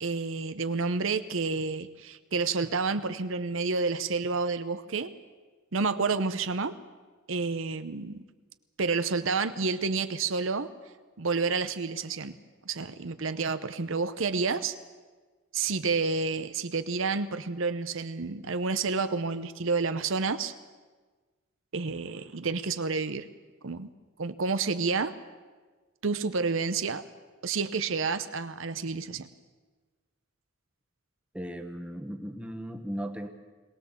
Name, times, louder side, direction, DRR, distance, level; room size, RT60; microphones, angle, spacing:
voice 1, 0.0-5.1 5.7-6.8 7.3-8.2 8.8-10.7 11.2-12.4 12.6-14.8 15.5-20.5 21.7-23.2 23.6-23.9 24.2-25.1 26.0-27.0 27.4-29.3, right 4 dB, 70° right, 12 dB, 0.8 m, -29 dB
voice 2, 31.3-33.3, equal, 5° right, 6 dB, 1.3 m, -37 dB
22.0 x 18.5 x 7.3 m, 1.4 s
head